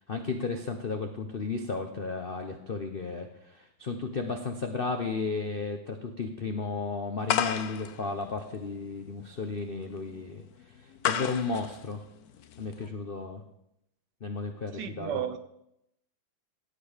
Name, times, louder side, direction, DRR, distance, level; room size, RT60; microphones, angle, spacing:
voice 1, 0.1-10.4 11.1-12.0 12.6-13.4 14.2-15.1, left 4 dB, 85° left, 0.5 m, -34 dB
sound 1, 7.3-12.9, left 9 dB, 65° left, 0.9 m, -34 dB
voice 2, 14.7-15.4, right 9 dB, 65° right, 1.2 m, -33 dB
16.5 x 7.7 x 5.0 m
omnidirectional pair, 2.3 m